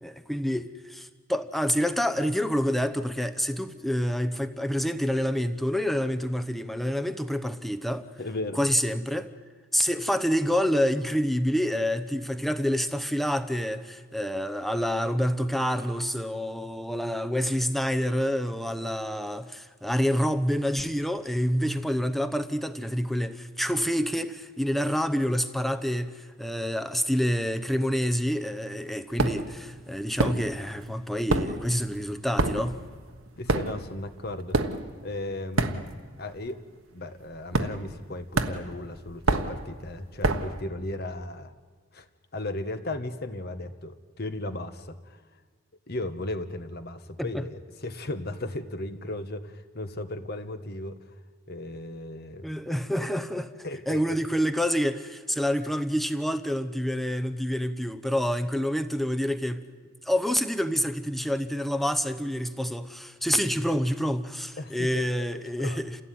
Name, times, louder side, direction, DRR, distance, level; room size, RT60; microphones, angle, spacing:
voice 1, 0.0-8.1 8.6-9.3 9.7-32.8 47.2-47.4 52.4-53.5 53.9-59.7 60.0-66.0, equal, ahead, 0.9 m, -27 dB
voice 2, 8.2-8.6 33.4-34.6 35.0-35.9 36.2-36.6 36.9-41.5 41.9-42.1 42.3-45.2 45.9-51.0 51.5-52.5 53.6-54.2 64.6-65.0 65.6-65.8, left 2 dB, 45° left, 1.4 m, -36 dB
sound 1, 29.2-29.6 30.2-30.8 31.1-36.2 36.5-36.8 37.5-38.1 38.4-40.6, right 2 dB, 70° right, 1.3 m, -28 dB
29.0 x 16.5 x 9.4 m
head